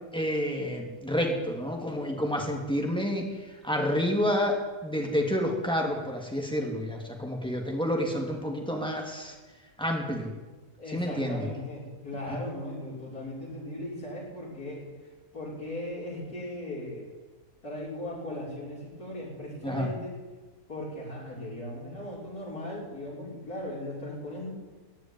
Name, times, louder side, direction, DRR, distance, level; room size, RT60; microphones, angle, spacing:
voice 1, 0.1-3.2 3.6-9.3 9.8-10.3 10.9-11.5 12.3-12.4 19.6-19.9, equal, 5° left, 1 dB, 2.7 m, -29 dB
voice 2, 10.8-17.1 17.6-20.1 20.7-24.5, left 1 dB, 85° left, -4 dB, 6.1 m, -38 dB
16.0 x 9.6 x 9.5 m, 1.2 s
omnidirectional pair, 1.6 m